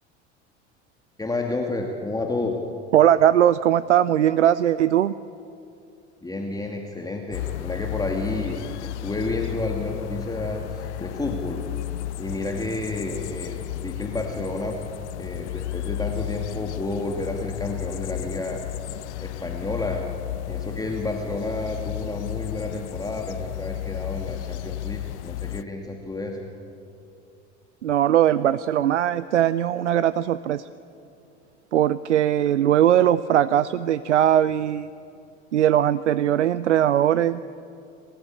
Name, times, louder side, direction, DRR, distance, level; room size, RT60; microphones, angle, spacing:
voice 1, 1.2-2.6 6.2-11.6 12.2-14.8 15.2-18.6 19.2-26.4, left 2 dB, 10° left, 1 dB, 2.5 m, -30 dB
voice 2, 2.9-5.1 27.8-30.6 31.7-34.9 35.5-37.4, right 11 dB, 90° right, 17 dB, 0.5 m, -20 dB
sound 1, 7.3-25.6, left 14 dB, 75° left, 0.5 m, -33 dB
27.0 x 14.5 x 8.6 m, 2.6 s
hypercardioid pair, 75°, 34 cm